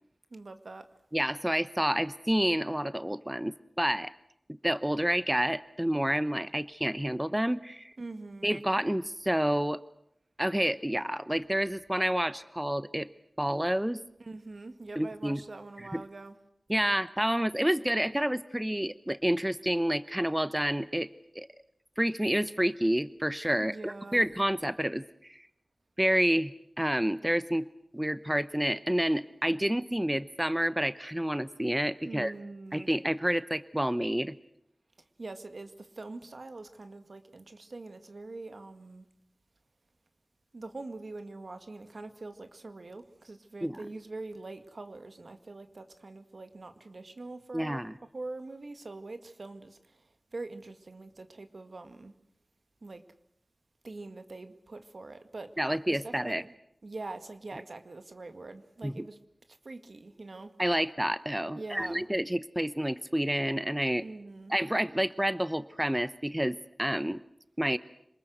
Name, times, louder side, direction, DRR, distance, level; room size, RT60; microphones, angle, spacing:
voice 1, 0.3-0.9 8.0-8.5 14.2-16.4 23.6-24.3 32.1-33.0 35.2-39.1 40.5-47.8 48.1-50.0 50.3-52.1 52.8-53.0 53.8-55.5 55.9-56.5 56.8-59.2 59.6-60.5 61.6-62.1 64.0-64.5, right 2 dB, 75° right, 2.0 m, -43 dB
voice 2, 1.1-4.1 4.6-7.9 8.4-9.8 10.4-13.1 13.4-14.0 15.0-15.4 15.9-16.0 16.7-21.1 21.3-21.5 22.0-25.5 26.0-27.7 27.9-32.3 32.7-34.4 43.6-43.8 47.5-48.0 55.6-56.4 58.8-59.0 60.6-64.1 64.5-67.2 67.6-67.8, equal, 10° right, 0.9 m, -29 dB
27.0 x 20.5 x 8.1 m
wide cardioid pair, 45°, 0 cm